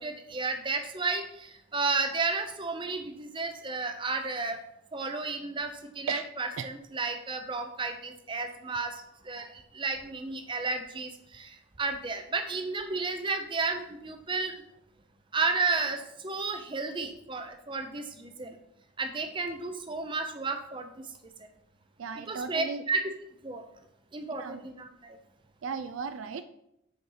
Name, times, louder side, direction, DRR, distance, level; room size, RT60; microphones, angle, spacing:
voice 1, 0.0-4.6 4.9-14.5 15.3-18.5 19.0-20.9 22.3-23.0 23.4-23.6 24.1-25.2, right 3 dB, 25° right, 6 dB, 0.6 m, -32 dB
voice 2, 22.0-22.9 24.4-24.6 25.6-26.4, right 5 dB, 65° right, 11 dB, 0.4 m, -36 dB
6.5 x 4.3 x 5.6 m, 0.80 s
head